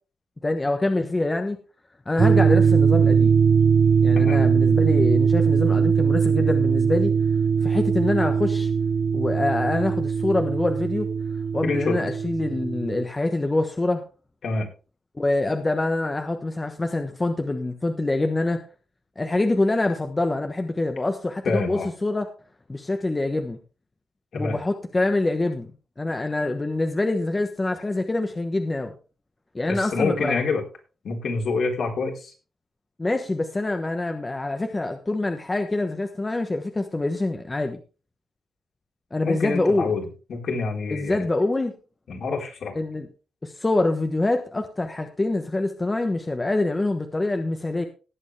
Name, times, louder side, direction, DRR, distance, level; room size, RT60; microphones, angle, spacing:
voice 1, 0.4-1.6 2.1-3.4 4.0-7.1 7.6-8.7 9.1-11.1 11.5-14.0 15.1-18.6 19.2-22.3 22.7-23.6 24.3-25.7 26.0-28.9 29.5-30.4 33.0-37.8 39.1-39.9 40.9-41.7 42.7-43.1 43.4-47.9, left 2 dB, 20° left, 6 dB, 1.2 m, -25 dB
sound 1, 2.2-13.0, right 6 dB, 45° right, 0.8 m, -20 dB
voice 2, 11.6-12.0 14.4-14.7 21.4-21.9 24.3-24.6 29.7-30.6 31.0-32.3 39.2-40.0 40.3-41.2 42.1-42.7, left 4 dB, 65° left, 0 dB, 4.1 m, -26 dB
18.0 x 8.1 x 3.4 m, 0.34 s
wide cardioid pair, 125°, 0 cm